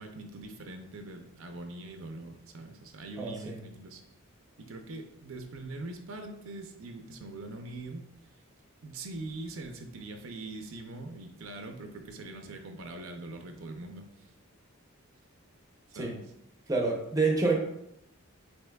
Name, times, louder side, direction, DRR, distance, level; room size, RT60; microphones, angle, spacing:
voice 1, 0.0-4.0 4.6-8.0 8.8-14.3 15.9-16.2, right 2 dB, 70° right, 5 dB, 0.6 m, -42 dB
voice 2, 3.2-3.6 16.0-16.1 16.7-17.5, right 3 dB, 15° right, 0 dB, 0.6 m, -27 dB
7.7 x 3.0 x 2.3 m, 0.79 s
head